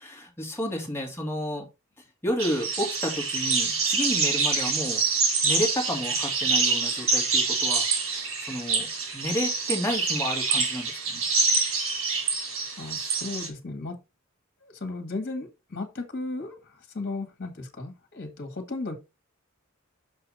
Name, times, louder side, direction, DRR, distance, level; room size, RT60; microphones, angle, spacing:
voice 1, 0.0-1.7 2.2-5.0 5.4-11.3, equal, 10° left, 2.4 m, -31 dB
sound 1, 2.4-13.5, right 4 dB, 75° right, 3.7 m, -26 dB
voice 2, 12.8-14.0 14.6-16.6 16.9-19.0, left 3 dB, 50° left, 1.8 m, -35 dB
6.4 x 5.8 x 4.2 m
head